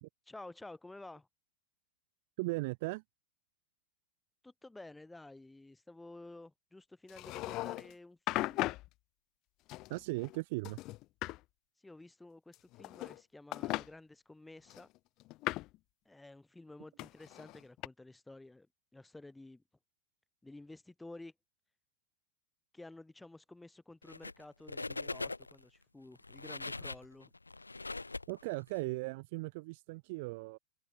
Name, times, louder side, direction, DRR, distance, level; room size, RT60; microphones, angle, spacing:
voice 1, 0.3-1.3 4.4-8.7 11.8-14.9 16.0-18.7 18.9-19.6 20.4-21.3 22.7-27.3, left 2 dB, 5° left, 4.3 m, -52 dB
voice 2, 2.4-3.0 9.9-10.8 28.3-30.6, right 24 dB, 50° right, 0.6 m, -37 dB
sound 1, 7.1-7.9 8.3-8.9 9.7-10.4 10.6-11.4 12.5-13.2 13.5-13.9 14.7-15.8 17.0-17.9, left 19 dB, 40° left, 0.5 m, -38 dB
sound 2, 24.0-24.4 24.7-25.6 26.2-28.8, left 3 dB, 80° left, 0.6 m, -41 dB
figure-of-eight pair, 90°, 0 cm